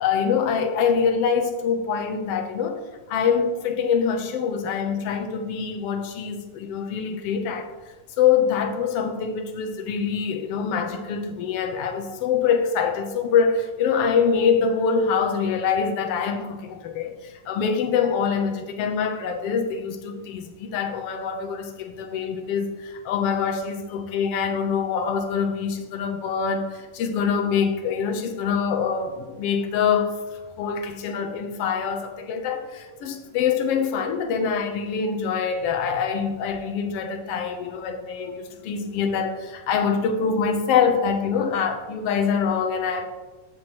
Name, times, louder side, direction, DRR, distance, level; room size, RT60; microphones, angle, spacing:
voice 1, 0.0-2.8 3.1-7.7 8.2-30.1 30.6-43.1, left 6 dB, 70° left, 1.4 m, -24 dB
14.0 x 7.9 x 3.1 m
omnidirectional pair, 3.8 m